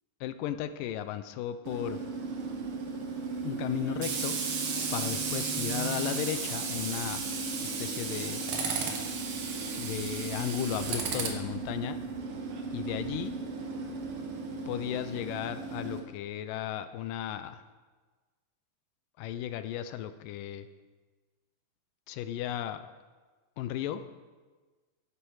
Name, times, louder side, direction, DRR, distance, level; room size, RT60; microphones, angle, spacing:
voice 1, 0.2-2.0 3.4-4.4 4.9-7.2 7.6-8.4 9.8-12.0 12.7-13.3 14.7-17.6 19.2-20.7 22.1-22.8 23.6-24.0, left 11 dB, 85° left, 11 dB, 2.2 m, -35 dB
Tools, 1.7-16.0, right 4 dB, 60° right, 1.6 m, -34 dB
13.0 x 9.6 x 4.7 m, 1.3 s
omnidirectional pair, 3.9 m